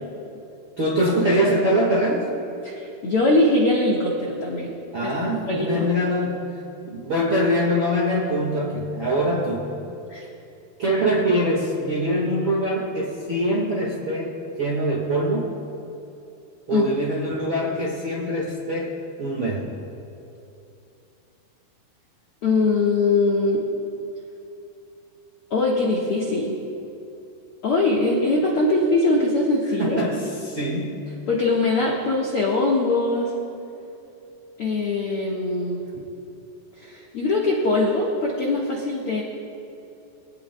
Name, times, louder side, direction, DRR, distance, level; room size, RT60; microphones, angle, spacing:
voice 1, 0.8-2.3 4.9-6.4 6.8-9.7 10.8-15.5 16.7-19.7 29.8-31.0, equal, 50° right, -4 dB, 1.4 m, -23 dB
voice 2, 2.6-4.7 5.0-5.1 5.5-5.9 10.1-10.2 16.7-16.9 22.4-23.6 25.5-26.6 27.6-30.0 31.3-33.3 34.6-35.8 36.8-39.2, left 2 dB, 65° left, -4 dB, 1.3 m, -22 dB
23.5 x 18.0 x 2.3 m, 2.8 s
omnidirectional pair, 4.9 m